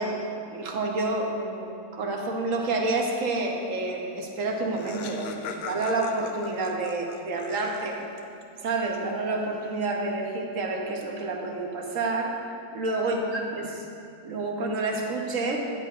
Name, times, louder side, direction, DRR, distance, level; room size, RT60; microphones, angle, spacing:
voice 1, 0.0-8.0 8.6-12.4 12.7-13.8 14.2-15.6, right 2 dB, 55° right, 1 dB, 1.0 m, -29 dB
Laughter, 4.2-4.3 4.5-8.1, left 6 dB, 90° left, 1.4 m, -40 dB
10.5 x 10.5 x 2.5 m, 2.6 s
omnidirectional pair, 2.2 m